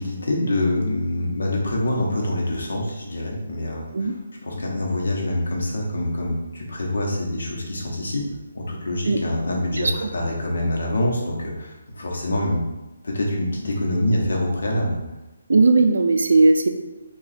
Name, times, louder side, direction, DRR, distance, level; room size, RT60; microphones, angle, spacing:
voice 1, 0.0-4.1 4.4-8.2 8.5-12.6 13.0-15.0, left 1 dB, 70° left, -1 dB, 0.9 m, -25 dB
voice 2, 9.7-10.1 15.5-16.7, right 3 dB, 65° right, 7 dB, 0.4 m, -17 dB
2.9 x 2.3 x 4.1 m, 1.0 s
hypercardioid pair, 180°, 0 cm